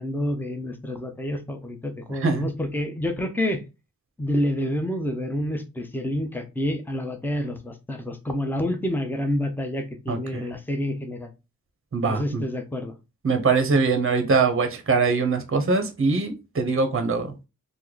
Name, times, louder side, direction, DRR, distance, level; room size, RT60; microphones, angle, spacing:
voice 1, 0.0-3.6 4.2-11.3 12.0-12.9, left 1 dB, 5° left, 0.8 m, -28 dB
voice 2, 10.1-10.4 11.9-12.4 13.2-17.3, right 4 dB, 40° right, 0.8 m, -22 dB
3.0 x 2.1 x 3.8 m
cardioid pair, 50°, 35 cm